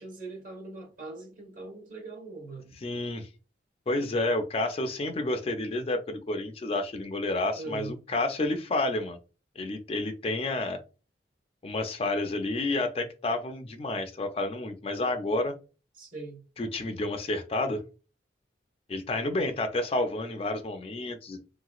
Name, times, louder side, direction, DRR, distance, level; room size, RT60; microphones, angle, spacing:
voice 1, 0.0-2.8 7.5-7.9 16.0-16.4, right 3 dB, 45° right, 1.2 m, -41 dB
voice 2, 2.8-3.3 3.9-9.2 9.6-10.8 11.6-15.5 16.6-17.8 18.9-21.4, left 2 dB, 30° left, 0.3 m, -30 dB
3.2 x 2.9 x 2.3 m
head